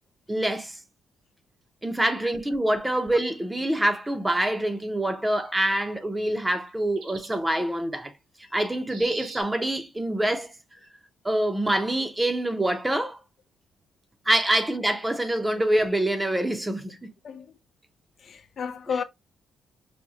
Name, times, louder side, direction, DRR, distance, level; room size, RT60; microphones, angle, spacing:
voice 1, 0.3-0.8 1.8-8.1 8.5-10.5 11.2-13.2 14.3-17.0 18.9-19.0, right 1 dB, 10° right, 0.6 m, -25 dB
sound 1, 5.3-5.6 6.0-6.3 6.7-6.8 7.0-7.4 8.9-9.4, right 4 dB, 80° right, 1.0 m, -44 dB
voice 2, 18.2-19.0, left 6 dB, 55° left, 0.4 m, -31 dB
4.8 x 2.2 x 2.6 m
cardioid pair, 90°, 0 cm